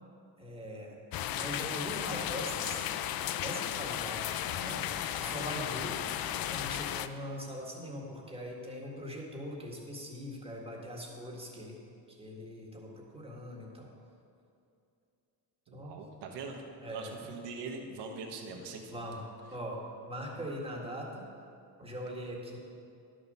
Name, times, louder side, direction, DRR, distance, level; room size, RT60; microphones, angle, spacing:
voice 1, 0.4-1.0 1.3-2.9 3.4-6.0 6.5-11.8 12.1-13.9 15.7-16.0 16.8-17.1 18.5-18.6 18.9-19.2 19.5-19.8 20.1-21.2 21.8-22.6, equal, 15° right, -1 dB, 1.7 m, -41 dB
sound 1, 1.1-7.1, left 11 dB, 55° left, 0.5 m, -35 dB
voice 2, 15.7-16.6 16.9-19.0, right 4 dB, 70° right, 2 dB, 1.3 m, -42 dB
11.0 x 6.6 x 5.4 m, 2.6 s
cardioid pair, 110°, 43 cm